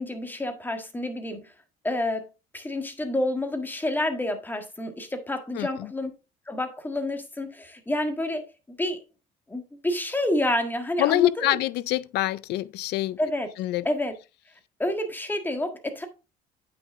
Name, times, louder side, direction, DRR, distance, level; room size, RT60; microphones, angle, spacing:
voice 1, 0.0-1.5 1.8-2.3 2.5-6.1 6.5-8.4 8.7-9.0 9.5-11.6 13.2-13.5 13.8-14.1 14.8-16.1, left 1 dB, 10° left, 1.6 m, -29 dB
voice 2, 11.0-13.2 13.6-13.8, left 16 dB, 80° left, 0.5 m, -25 dB
8.5 x 5.9 x 3.5 m
cardioid pair, 110°, 17 cm